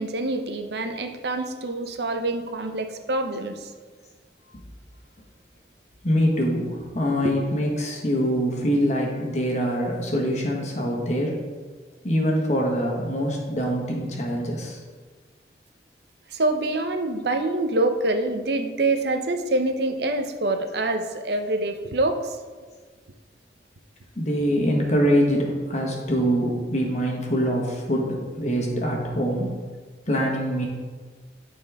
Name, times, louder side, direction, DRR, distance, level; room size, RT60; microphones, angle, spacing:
voice 1, 0.0-3.7 7.2-7.5 16.3-22.4, right 2 dB, 70° right, 6 dB, 0.7 m, -26 dB
voice 2, 6.0-11.3 12.0-14.8 24.1-29.5 30.1-30.6, equal, 40° left, -1 dB, 1.5 m, -24 dB
13.0 x 4.3 x 3.5 m, 1.4 s
head